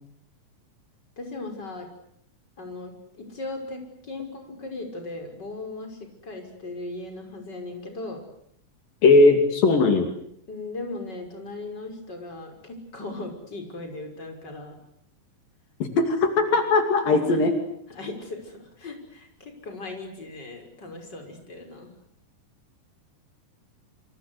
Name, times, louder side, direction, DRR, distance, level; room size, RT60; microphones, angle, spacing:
voice 1, 1.2-1.9 2.6-8.2 10.5-14.7 17.3-17.4 17.9-21.9, left 2 dB, 30° left, 4 dB, 6.5 m, -38 dB
voice 2, 9.0-10.1 16.0-17.5, left 3 dB, 80° left, 6 dB, 4.4 m, -18 dB
27.5 x 26.5 x 8.2 m, 0.69 s
omnidirectional pair, 4.0 m